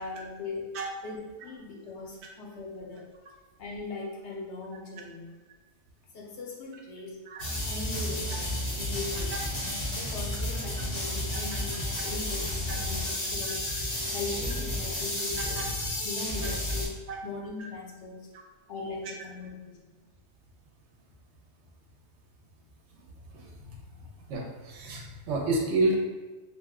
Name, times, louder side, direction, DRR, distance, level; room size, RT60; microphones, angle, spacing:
voice 1, 0.0-0.7 1.0-3.1 3.6-5.3 6.1-7.2 7.6-8.5 8.8-9.4 10.0-13.6 14.1-15.6 16.0-16.9 17.2-18.3 18.7-19.8, left 3 dB, 75° left, -2 dB, 0.9 m, -39 dB
sound 1, 7.4-16.9, left 1 dB, 30° left, 0.6 m, -32 dB
voice 2, 23.3-23.8 24.3-26.0, right 2 dB, 75° right, 0 dB, 0.9 m, -30 dB
2.7 x 2.0 x 3.5 m, 1.3 s
omnidirectional pair, 1.2 m